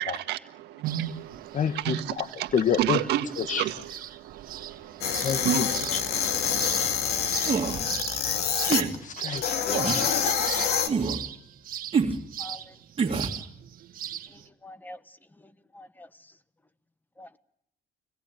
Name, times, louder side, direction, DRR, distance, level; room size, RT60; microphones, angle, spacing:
voice 1, 0.0-2.5 2.8-6.9, right 12 dB, 85° right, 1.5 m, -32 dB
sound 1, 0.9-14.5, right 10 dB, 55° right, 1.5 m, -40 dB
voice 2, 1.5-2.3 2.5-3.0 3.4-3.6 5.2-5.7 5.9-6.3 8.7-10.7, left 8 dB, 50° left, 1.4 m, -29 dB
sound 2, 5.0-8.8 9.4-10.9, left 7 dB, 70° left, 2.3 m, -26 dB
sound 3, 7.5-7.8 8.6-8.9 9.7-10.0 10.9-11.2 11.9-12.2 13.0-13.4, right 5 dB, 35° right, 2.5 m, -26 dB
voice 3, 12.4-12.8 14.3-16.3 17.2-17.4, left 1 dB, 10° left, 1.2 m, -47 dB
25.0 x 18.0 x 9.0 m
cardioid pair, 110°, 17 cm